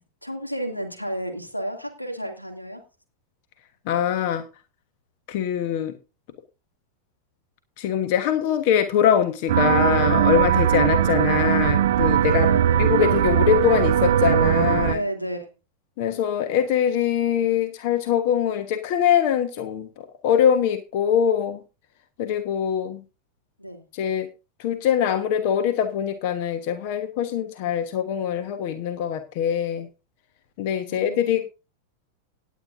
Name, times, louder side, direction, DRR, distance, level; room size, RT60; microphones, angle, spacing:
voice 1, 0.2-2.8 12.3-12.8 14.8-15.5 23.6-23.8 30.8-31.4, equal, 85° left, 4 dB, 2.4 m, -32 dB
voice 2, 3.9-4.4 5.3-5.9 7.8-12.5 12.8-15.0 16.0-21.6 22.2-23.0 23.9-24.3 24.6-29.9 30.6-31.4, left 9 dB, 45° left, 9 dB, 1.2 m, -23 dB
sound 1, 9.5-14.9, right 10 dB, 60° right, 0.5 m, -20 dB
18.0 x 9.4 x 2.6 m, 0.31 s
figure-of-eight pair, 90°, 0 cm